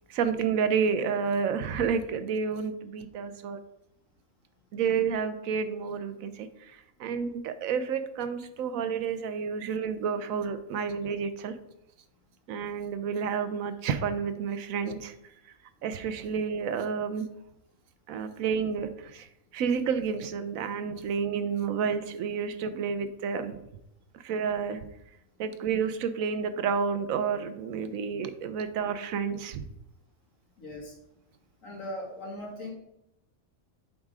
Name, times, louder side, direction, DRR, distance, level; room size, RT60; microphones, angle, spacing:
voice 1, 0.1-3.6 4.7-6.5 7.0-11.5 12.5-15.1 15.8-17.3 18.1-19.3 19.5-23.6 24.2-24.8 25.4-29.6, right 6 dB, 80° right, 11 dB, 1.0 m, -30 dB
voice 2, 30.6-31.0 31.6-32.7, left 1 dB, 70° left, -3 dB, 2.5 m, -39 dB
8.0 x 4.9 x 3.6 m, 0.83 s
omnidirectional pair, 1.5 m